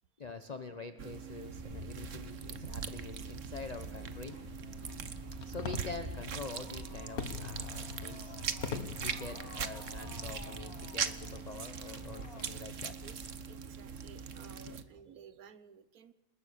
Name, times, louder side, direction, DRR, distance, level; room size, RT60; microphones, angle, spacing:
voice 1, 0.2-4.4 5.4-13.0 14.6-14.8, left 3 dB, 30° left, 1.1 m, -45 dB
sound 1, 1.0-14.8, right 7 dB, 60° right, 1.4 m, -41 dB
Bird / Wind, 1.5-14.3, equal, 30° right, 5.7 m, -48 dB
Fireworks, 4.1-12.5, left 6 dB, 85° left, 2.0 m, -46 dB
voice 2, 13.5-16.1, right 7 dB, 80° right, 1.5 m, -55 dB
29.5 x 20.0 x 6.6 m
omnidirectional pair, 1.5 m